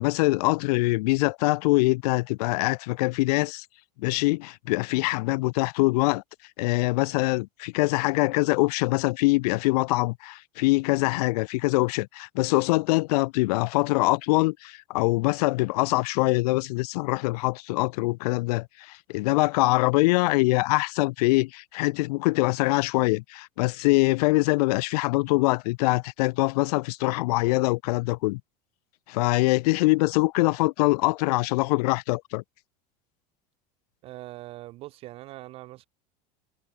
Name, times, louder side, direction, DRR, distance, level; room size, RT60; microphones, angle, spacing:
voice 1, 0.0-3.6 4.0-6.2 6.6-28.4 29.1-32.4, left 23 dB, 85° left, 0.4 m, -24 dB
voice 2, 34.0-35.9, right 17 dB, 30° right, 0.4 m, -42 dB
cardioid pair, 170°, 20 cm